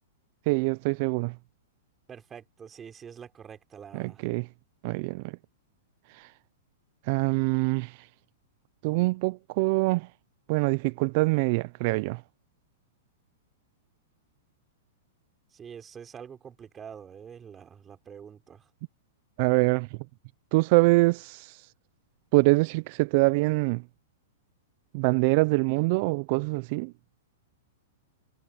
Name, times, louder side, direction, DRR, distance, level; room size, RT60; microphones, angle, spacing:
voice 1, 0.5-1.4 3.9-4.5 4.8-5.4 6.1-6.3 7.0-8.1 8.8-10.1 10.5-12.2 19.4-20.0 20.5-21.7 22.3-23.8 24.9-26.9, right 25 dB, 50° right, 0.5 m, -24 dB
voice 2, 2.1-4.2 15.5-18.7, right 7 dB, 20° right, 4.3 m, -46 dB
hypercardioid pair, 130°, 0 cm